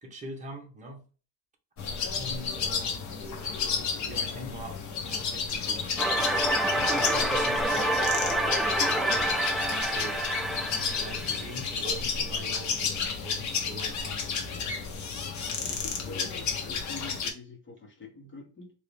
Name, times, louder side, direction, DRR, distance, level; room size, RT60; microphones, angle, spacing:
voice 1, 0.0-1.0 2.2-3.1 4.1-6.3 6.7-10.2 10.5-14.2, right 1 dB, 20° right, 0 dB, 1.2 m, -43 dB
sound 1, 1.8-17.3, left 5 dB, 50° left, 1.0 m, -31 dB
sound 2, 6.0-12.8, right 1 dB, ahead, 0.3 m, -28 dB
voice 2, 15.6-18.7, left 3 dB, 30° left, 1 dB, 1.5 m, -45 dB
3.8 x 2.8 x 3.4 m, 0.36 s
cardioid pair, 150°, 37 cm